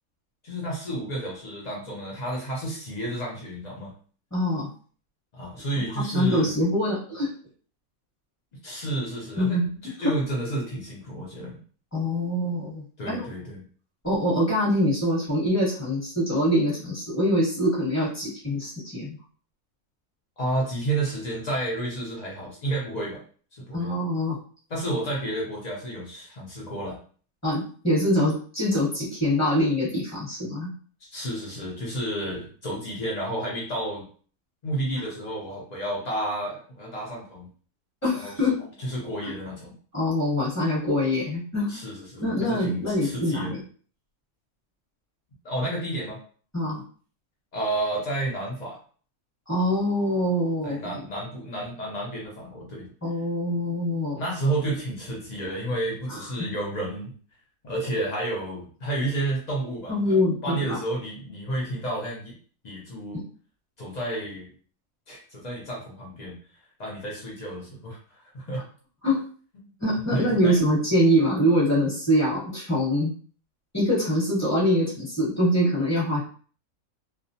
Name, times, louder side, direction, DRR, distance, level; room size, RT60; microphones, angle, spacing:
voice 1, 0.4-3.9 5.3-6.6 8.6-11.5 13.0-13.7 20.4-23.2 23.5-24.0 24.7-27.0 31.0-34.1 34.6-37.5 38.2-38.5 38.8-39.7 41.7-43.5 45.4-46.2 47.5-48.8 50.6-52.9 54.1-57.1 57.6-60.0 60.4-62.4 62.6-63.2 63.8-64.5 65.1-66.4 66.8-68.6 69.6-69.7 70.1-70.6, right 1 dB, 85° left, -3 dB, 0.3 m, -31 dB
voice 2, 4.3-4.7 6.0-7.3 9.4-9.7 10.0-10.1 11.9-13.3 14.0-19.2 23.7-24.4 27.4-30.7 35.0-35.1 38.0-38.6 39.2-39.3 39.9-41.8 42.2-43.6 46.5-46.8 49.5-51.0 53.0-54.2 56.1-56.2 59.9-60.8 63.1-63.2 68.5-68.6 69.0-69.2 69.8-73.1 73.7-76.3, equal, 15° left, -6 dB, 0.8 m, -24 dB
2.3 x 2.1 x 2.6 m, 0.43 s
omnidirectional pair, 1.5 m